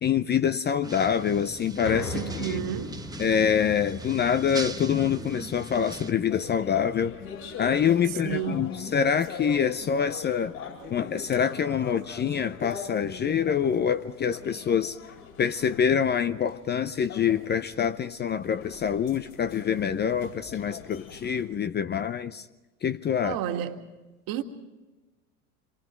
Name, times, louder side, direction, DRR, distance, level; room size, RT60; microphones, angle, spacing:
voice 1, 0.0-2.6 3.2-7.2 7.6-10.5 10.9-15.0 15.4-22.4 22.8-23.4, left 8 dB, 25° left, 0.7 m, -26 dB
sound 1, 0.8-6.1, right 3 dB, 10° right, 1.1 m, -40 dB
sound 2, 1.8-14.1 14.5-14.6 15.0-15.1, left 3 dB, 90° left, 5.3 m, -43 dB
voice 2, 2.1-3.0 8.1-8.8 23.2-23.9 24.3-24.4, right 10 dB, 50° right, 2.2 m, -32 dB
sound 3, 6.3-21.5, left 5 dB, 60° left, 8.0 m, -42 dB
27.5 x 23.0 x 4.5 m
hypercardioid pair, 80°, 44 cm